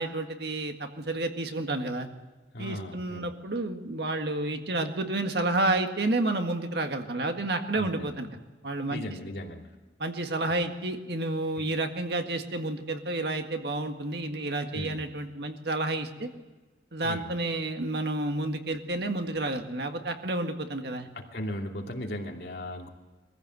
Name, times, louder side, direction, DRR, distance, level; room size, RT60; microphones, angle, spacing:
voice 1, 0.0-2.1 2.6-8.3 8.6-9.0 10.0-16.3 16.9-21.1, right 2 dB, 60° right, 5 dB, 1.8 m, -30 dB
voice 2, 2.5-3.3 7.7-8.1 8.9-9.7 11.6-11.7 14.7-15.0 17.0-17.3 21.1-22.9, left 1 dB, 60° left, 2 dB, 2.6 m, -37 dB
22.5 x 15.5 x 7.8 m, 1.2 s
head